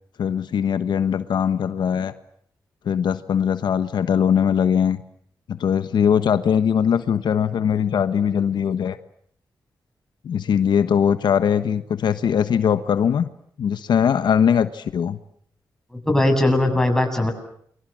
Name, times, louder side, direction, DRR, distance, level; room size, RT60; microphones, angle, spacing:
voice 1, 0.2-2.1 2.8-5.0 5.5-9.0 10.2-13.3 13.6-15.2, left 8 dB, 80° left, 11 dB, 1.3 m, -21 dB
voice 2, 15.9-17.3, left 1 dB, 5° left, 4 dB, 7.8 m, -19 dB
29.0 x 24.5 x 7.6 m, 0.66 s
cardioid pair, 90°, 7 cm